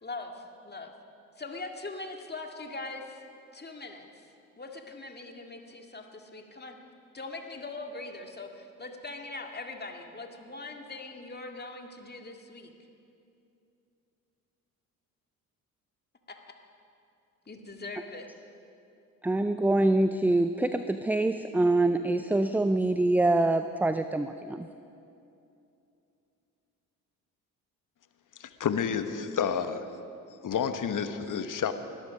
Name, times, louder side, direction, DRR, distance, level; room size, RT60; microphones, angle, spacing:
voice 1, 0.0-0.9 1.4-3.2 3.5-4.3 4.6-6.8 7.1-12.7 16.3-16.6 17.5-18.3, left 3 dB, 20° left, 3 dB, 2.1 m, -41 dB
voice 2, 19.2-24.7, right 2 dB, 5° right, 10 dB, 0.4 m, -25 dB
voice 3, 28.4-29.9 30.4-31.7, left 7 dB, 45° left, 9 dB, 1.3 m, -30 dB
21.0 x 13.0 x 5.2 m, 2.7 s
hypercardioid pair, 55°, 44 cm